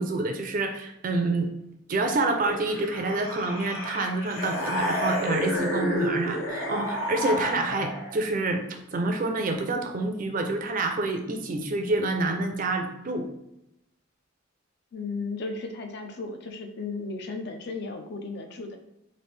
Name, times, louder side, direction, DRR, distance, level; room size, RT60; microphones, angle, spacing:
voice 1, 0.0-1.5 1.9-13.3, right 2 dB, 40° right, 5 dB, 0.4 m, -28 dB
sound 1, 2.4-8.2, equal, 70° left, 0.8 m, -30 dB
voice 2, 14.9-18.8, left 3 dB, 55° left, 5 dB, 0.4 m, -35 dB
3.2 x 2.5 x 3.2 m, 0.83 s
head